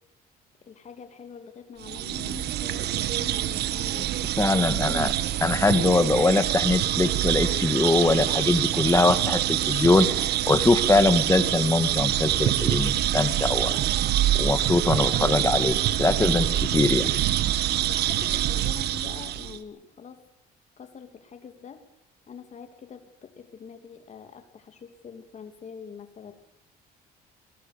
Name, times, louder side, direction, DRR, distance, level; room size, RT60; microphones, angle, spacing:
voice 1, 0.7-4.1 17.8-20.2 20.8-21.8 22.3-26.3, left 6 dB, 45° left, 7 dB, 2.9 m, -44 dB
sound 1, 1.8-19.6, right 12 dB, 75° right, 1.4 m, -25 dB
voice 2, 4.4-5.1 5.4-10.1 10.5-13.7 14.3-16.5 16.7-17.1, left 3 dB, 15° left, 10 dB, 1.9 m, -22 dB
22.0 x 20.5 x 6.8 m, 0.84 s
cardioid pair, 110°, 17 cm